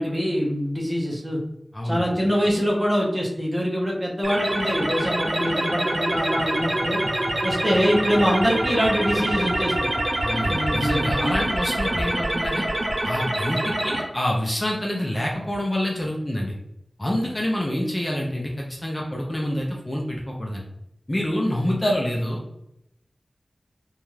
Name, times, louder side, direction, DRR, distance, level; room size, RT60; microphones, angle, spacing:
voice 1, 0.0-1.4 1.8-7.0 7.4-9.9 10.5-11.4, equal, 20° right, -3 dB, 0.8 m, -24 dB
voice 2, 1.7-2.0 10.2-12.7 13.0-16.6 17.0-20.6 21.1-22.4, left 1 dB, 25° left, -2 dB, 0.5 m, -27 dB
sound 1, 4.2-14.0, right 1 dB, 70° right, 0.6 m, -25 dB
2.5 x 2.3 x 3.2 m, 0.80 s
wide cardioid pair, 65°, 0 cm